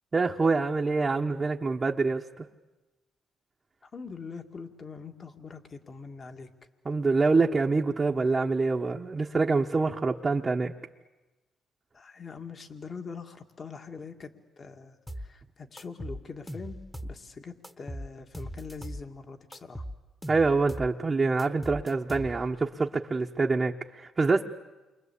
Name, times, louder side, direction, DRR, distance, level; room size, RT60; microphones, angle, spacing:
voice 1, 0.1-2.4 6.8-10.7 20.3-24.4, right 3 dB, 30° right, -1 dB, 1.2 m, -26 dB
voice 2, 3.8-6.5 11.9-14.3 14.6-19.8, left 5 dB, 40° left, 5 dB, 2.1 m, -43 dB
sound 1, 15.1-15.3 15.8-17.2 17.6-19.1 19.5-20.9 21.4-22.6, equal, 5° left, 1.4 m, -39 dB
28.5 x 23.5 x 8.5 m, 1.1 s
cardioid pair, 90°, 0 cm